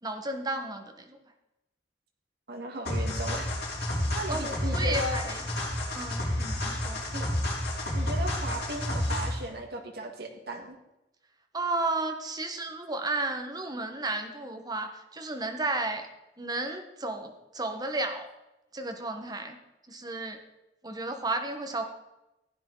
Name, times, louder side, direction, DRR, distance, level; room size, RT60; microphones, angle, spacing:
voice 1, 0.0-1.2 4.3-5.5 5.9-7.0 11.5-16.1 16.4-18.3 18.7-19.6 19.9-20.4 20.8-21.8, right 2 dB, 20° right, 5 dB, 1.3 m, -33 dB
voice 2, 2.5-3.5 3.8-5.2 7.1-7.2 7.9-10.8, right 1 dB, 60° right, 2 dB, 1.8 m, -36 dB
sound 1, 2.8-9.5, left 1 dB, 60° left, 3.8 m, -30 dB
15.5 x 9.7 x 3.9 m, 0.94 s
head